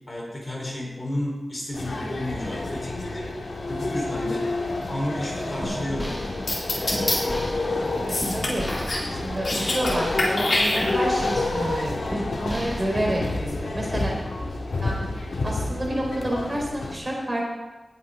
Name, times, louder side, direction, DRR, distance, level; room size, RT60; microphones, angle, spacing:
voice 1, 0.1-3.3 3.7-4.5 4.9-6.2, left 1 dB, 30° left, -2 dB, 4.2 m, -31 dB
sound 1, 1.7-16.9, left 2 dB, 85° left, 2.4 m, -29 dB
sound 2, 5.6-13.4, equal, 10° left, 2.5 m, -35 dB
sound 3, 6.5-7.2 8.1-9.1 9.3-9.9 10.2-11.2, left 2 dB, 55° left, 3.9 m, -25 dB
voice 2, 8.0-8.7 9.1-14.1 14.8-15.0 15.4-17.5, right 1 dB, 30° right, -2 dB, 4.7 m, -29 dB
19.5 x 9.4 x 3.8 m, 1.2 s
wide cardioid pair, 85°, 0 cm